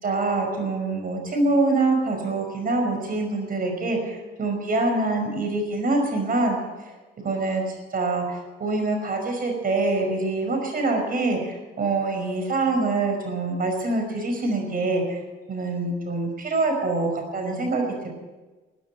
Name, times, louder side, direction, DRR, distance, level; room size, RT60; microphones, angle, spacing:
voice 1, 0.0-6.6 7.2-15.2 15.5-18.1, right 2 dB, 45° right, 3 dB, 5.4 m, -25 dB
15.5 x 9.3 x 9.2 m, 1.2 s
cardioid pair, 90°, 20 cm